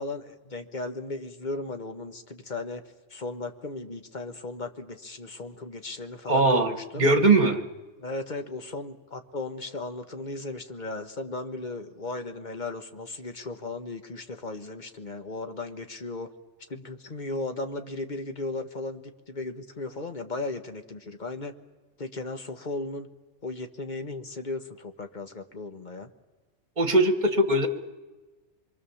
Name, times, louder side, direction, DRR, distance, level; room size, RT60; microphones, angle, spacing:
voice 1, 0.0-2.8 3.1-7.1 8.0-16.3 16.7-21.5 22.0-23.1 23.4-26.1, left 3 dB, 40° left, 7 dB, 1.4 m, -36 dB
voice 2, 6.3-7.6 26.8-27.7, right 2 dB, 40° right, 8 dB, 1.6 m, -21 dB
26.0 x 23.0 x 7.1 m, 1.2 s
omnidirectional pair, 1.2 m